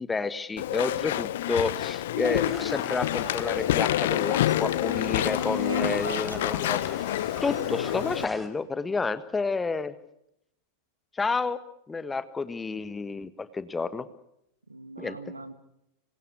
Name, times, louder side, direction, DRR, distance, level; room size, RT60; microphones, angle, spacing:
voice 1, 0.0-6.8 7.4-9.9 11.1-11.6 11.9-14.1 15.0-15.2, left 4 dB, 15° left, 13 dB, 1.4 m, -30 dB
Walk footsteps / Chatter / Squeak, 0.6-8.2, left 13 dB, 55° left, 1.1 m, -28 dB
sound 1, 2.2-8.5, right 2 dB, 10° right, 4.4 m, -43 dB
voice 2, 5.2-6.5 14.7-15.5, right 2 dB, 80° right, 11 dB, 2.1 m, -38 dB
28.0 x 23.0 x 8.5 m, 0.83 s
figure-of-eight pair, 90°, 0 cm